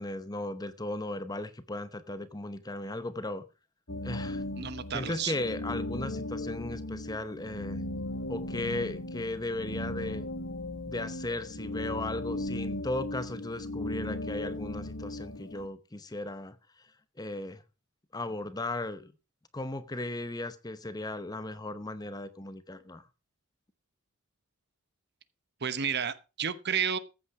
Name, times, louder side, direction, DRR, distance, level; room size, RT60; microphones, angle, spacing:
voice 1, 0.0-3.4 4.0-4.4 4.9-7.8 8.3-10.3 10.9-16.6 17.2-17.6 18.1-19.1 19.5-23.1, left 2 dB, 20° left, 0.9 m, -36 dB
sound 1, 3.9-15.7, left 1 dB, 60° left, 1.6 m, -37 dB
voice 2, 4.6-5.3 25.6-27.0, right 7 dB, 50° right, 1.0 m, -31 dB
14.5 x 8.5 x 4.7 m
head